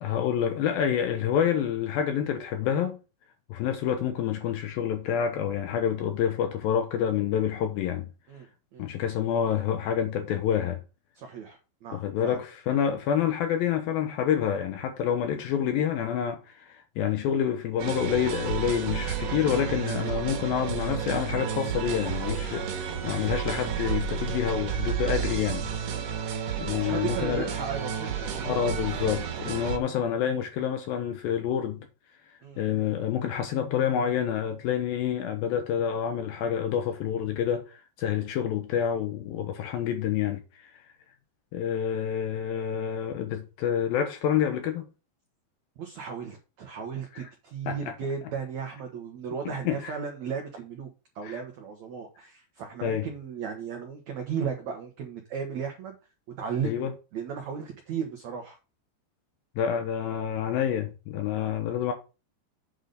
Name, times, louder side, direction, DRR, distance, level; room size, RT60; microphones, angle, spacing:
voice 1, 0.0-3.0 3.5-8.1 8.8-10.8 11.9-25.7 26.6-27.5 28.4-31.9 32.6-40.7 41.5-44.9 47.7-47.8 49.7-49.9 51.2-51.4 52.8-53.1 56.6-56.9 59.6-61.9, left 9 dB, 75° left, 2.3 m, -28 dB
voice 2, 11.1-12.4 26.8-28.7 32.4-32.6 45.8-50.9 51.1-56.0 56.4-58.6, right 6 dB, 85° right, 1.6 m, -35 dB
sound 1, 17.8-29.8, right 8 dB, 60° right, 2.3 m, -31 dB
8.0 x 3.9 x 6.6 m
omnidirectional pair, 5.0 m